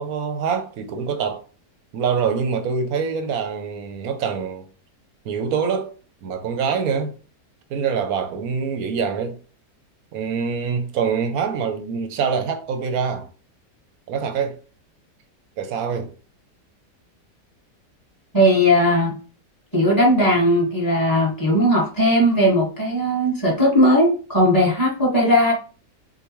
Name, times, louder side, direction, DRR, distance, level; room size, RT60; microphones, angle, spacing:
voice 1, 0.0-1.4 1.9-4.7 5.2-5.9 6.2-7.1 7.7-9.4 10.1-13.3 14.1-14.6 15.6-16.1, right 6 dB, 70° right, 1.0 m, -25 dB
voice 2, 18.3-19.1 19.7-25.5, equal, 10° left, 1.5 m, -18 dB
6.5 x 2.5 x 3.0 m
omnidirectional pair, 1.8 m